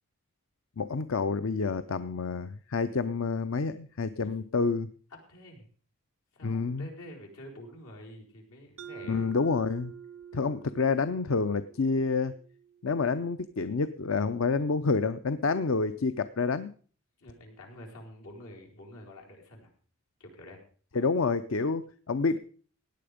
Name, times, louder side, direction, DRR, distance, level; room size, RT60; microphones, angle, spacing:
voice 1, 0.8-4.9 6.4-6.9 9.0-9.9 10.3-12.3 12.8-16.7 20.9-22.4, left 4 dB, 65° left, 13 dB, 0.6 m, -28 dB
voice 2, 5.3-5.7 6.3-9.4 17.2-19.7 20.2-20.6, left 1 dB, 85° left, 0 dB, 4.6 m, -48 dB
Mallet percussion, 8.8-13.3, right 8 dB, 70° right, 0.5 m, -48 dB
17.0 x 9.5 x 5.1 m, 0.43 s
head